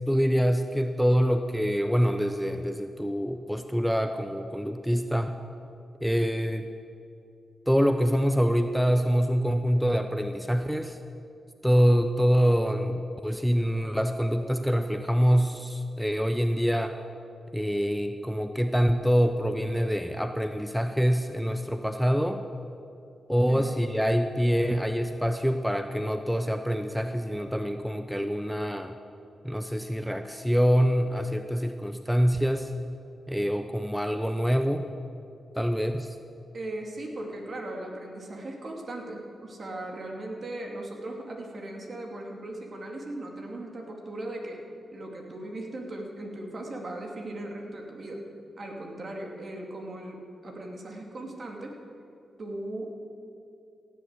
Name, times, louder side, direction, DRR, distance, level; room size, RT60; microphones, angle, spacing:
voice 1, 0.1-5.4 6.0-6.7 7.7-11.0 11.6-17.0 17.5-22.4 23.3-29.0 29.4-32.7 33.3-34.8 35.6-36.2, equal, ahead, 8 dB, 0.7 m, -25 dB
voice 2, 36.5-44.6 44.9-48.2 48.6-51.8 52.4-53.1, right 1 dB, 50° right, 1 dB, 2.6 m, -38 dB
16.0 x 7.4 x 8.2 m, 2.6 s
cardioid pair, 60°, 0 cm